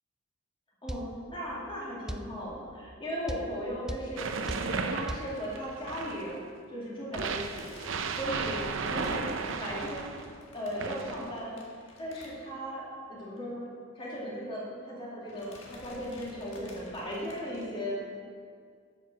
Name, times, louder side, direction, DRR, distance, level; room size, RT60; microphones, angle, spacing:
voice 1, 0.8-4.3 4.6-6.4 6.7-7.7 8.1-8.6 8.9-9.2 9.6-10.2 10.5-11.6 12.0-13.6 13.9-18.0, equal, 25° left, -6 dB, 2.3 m, -37 dB
sound 1, 0.9-1.1 2.1-2.3 3.3-3.5 3.9-4.1 4.5-4.7 5.1-5.3, equal, 5° right, 0.3 m, -36 dB
sound 2, 4.2-6.4 7.1-10.3 10.8-11.4, right 4 dB, 65° right, 0.6 m, -34 dB
sound 3, 7.3-12.9 13.2-13.4 13.7-13.8 14.7-15.0 15.3-17.6, left 1 dB, 65° left, 1.7 m, -52 dB
8.7 x 6.7 x 6.4 m, 2.1 s
head